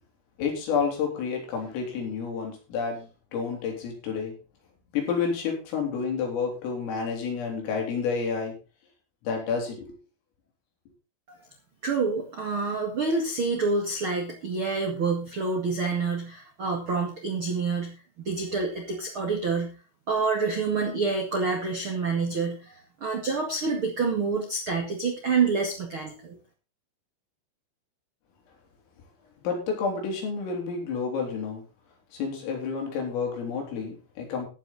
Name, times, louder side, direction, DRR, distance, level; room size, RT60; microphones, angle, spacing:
voice 1, 0.4-4.3 4.9-8.6 9.2-10.0 29.4-31.6 32.1-34.5, left 5 dB, 75° left, 1 dB, 6.4 m, -30 dB
voice 2, 11.8-17.9 18.2-19.7 20.1-26.4, right 4 dB, 80° right, 1 dB, 1.1 m, -27 dB
14.0 x 9.8 x 4.2 m, 0.33 s
omnidirectional pair, 5.9 m